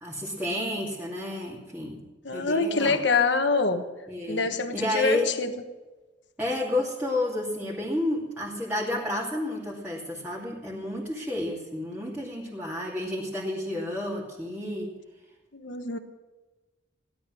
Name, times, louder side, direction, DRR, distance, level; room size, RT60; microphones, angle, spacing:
voice 1, 0.0-2.0 2.3-3.0 4.1-5.3 6.4-14.9, left 1 dB, 10° right, -5 dB, 2.6 m, -31 dB
voice 2, 2.2-3.8 4.3-5.5 15.5-16.0, left 4 dB, 65° left, 7 dB, 1.3 m, -25 dB
16.5 x 11.5 x 6.3 m, 1.2 s
head